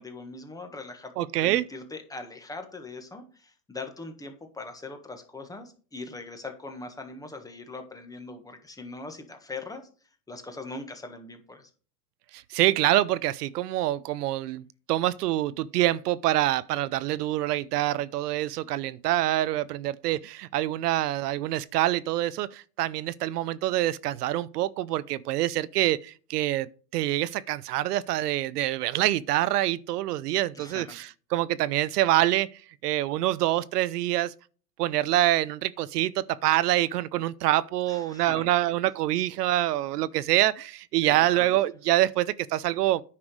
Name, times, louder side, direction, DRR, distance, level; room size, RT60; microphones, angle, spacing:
voice 1, 0.0-9.8 10.3-11.7 30.5-31.0 37.9-38.5 41.0-41.5, left 3 dB, 5° left, 1.4 m, -41 dB
voice 2, 1.2-1.6 12.3-32.5 32.8-34.3 34.8-43.0, right 15 dB, 70° right, 0.7 m, -26 dB
9.9 x 5.9 x 4.7 m
supercardioid pair, 140°, 48 cm